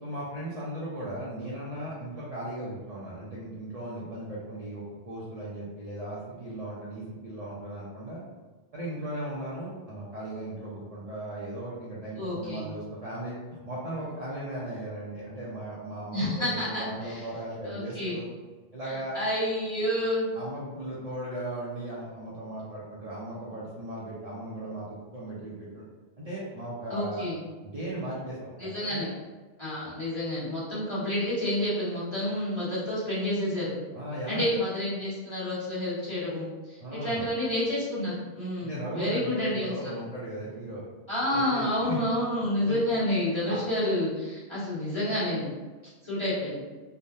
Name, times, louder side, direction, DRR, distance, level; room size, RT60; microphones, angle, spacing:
voice 1, 0.0-8.2 8.7-18.2 18.7-19.2 20.3-25.8 26.2-27.2 27.6-29.1 29.8-29.9 33.9-34.5 36.8-37.3 38.6-40.8 41.3-42.0 42.6-42.8 43.5-43.6, right 1 dB, 45° right, -8 dB, 0.6 m, -37 dB
voice 2, 12.1-12.6 16.1-17.2 17.6-18.2 18.8-20.3 26.9-27.4 28.6-29.1 29.6-33.7 34.3-39.9 41.1-45.5 46.0-46.6, left 1 dB, 25° left, -12 dB, 1.3 m, -29 dB
3.3 x 2.1 x 2.6 m, 1.3 s
omnidirectional pair, 1.1 m